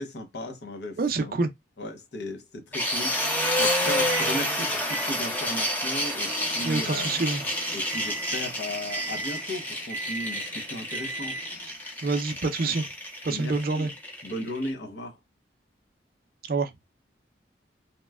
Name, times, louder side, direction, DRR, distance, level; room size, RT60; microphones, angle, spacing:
voice 1, 0.0-1.3 1.8-3.3 3.6-7.1 7.7-11.4 13.3-13.9 14.2-15.2, left 1 dB, 70° left, 0.7 m, -36 dB
voice 2, 1.0-1.5 6.7-7.4 12.0-12.9 13.2-13.9 16.5-16.7, right 3 dB, 55° right, 0.4 m, -26 dB
sound 1, 2.7-14.7, left 1 dB, 10° left, 0.5 m, -29 dB
Microwave oven, 4.1-4.4 4.9-11.7, right 2 dB, 85° right, 0.7 m, -39 dB
3.0 x 2.1 x 2.2 m
head